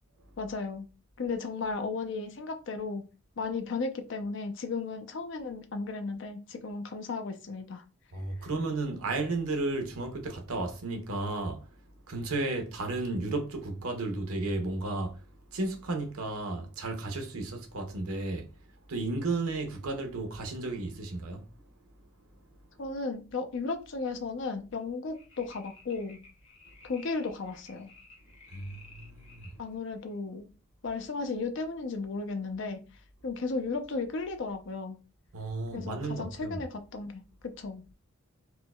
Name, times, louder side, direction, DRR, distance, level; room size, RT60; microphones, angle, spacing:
voice 1, 0.4-0.9 1.2-3.0 3.4-7.8 22.8-26.2 26.8-27.9 29.6-30.5 30.8-32.8 33.2-35.0 35.7-37.2 37.6-37.8, left 4 dB, 55° left, 0.4 m, -35 dB
voice 2, 8.1-11.7 12.1-15.2 15.5-18.5 18.9-21.4 28.5-29.6 35.3-36.6, right 2 dB, 80° right, 0.7 m, -33 dB
sound 1, 25.1-29.6 30.1-30.2, left 3 dB, 25° left, 0.7 m, -55 dB
4.4 x 2.1 x 2.2 m
head